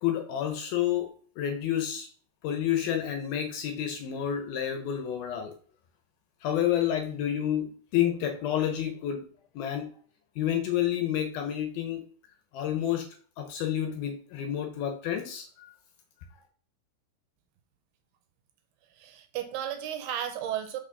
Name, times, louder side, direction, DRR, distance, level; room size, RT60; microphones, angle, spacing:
voice 1, 0.0-1.1 1.4-2.1 2.4-5.5 6.4-9.3 9.6-9.9 10.4-12.1 12.5-13.1 13.4-15.7, left 10 dB, 75° left, 6 dB, 2.3 m, -29 dB
voice 2, 18.9-20.8, right 10 dB, 75° right, 7 dB, 2.6 m, -34 dB
5.9 x 5.8 x 4.0 m, 0.43 s
omnidirectional pair, 4.9 m